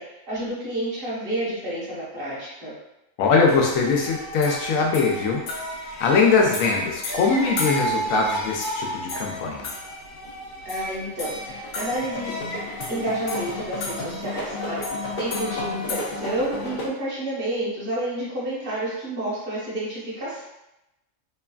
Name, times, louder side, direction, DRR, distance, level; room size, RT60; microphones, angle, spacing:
voice 1, 0.0-2.7 10.6-12.3 12.9-20.4, right 1 dB, 45° right, -8 dB, 1.2 m, -30 dB
voice 2, 3.2-5.4 5.8-9.7, left 4 dB, 85° left, 0 dB, 1.0 m, -21 dB
sound 1, 3.5-16.9, equal, 65° left, 0.6 m, -31 dB
3.0 x 2.3 x 2.3 m, 0.92 s
omnidirectional pair, 1.4 m